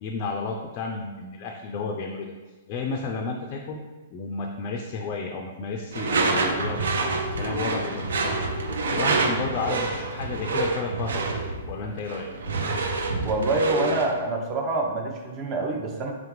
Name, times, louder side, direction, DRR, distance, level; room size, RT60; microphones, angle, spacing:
voice 1, 0.0-2.3 2.7-3.8 4.1-6.9 7.4-8.4 8.9-11.2 11.7-12.3, left 4 dB, 35° left, 1 dB, 0.3 m, -32 dB
Door / Screech, 5.9-14.2, right 3 dB, 70° right, 0.4 m, -27 dB
voice 2, 13.2-16.1, right 2 dB, 30° right, 1 dB, 0.6 m, -26 dB
3.6 x 3.4 x 3.1 m, 1.3 s
figure-of-eight pair, 115°, 0 cm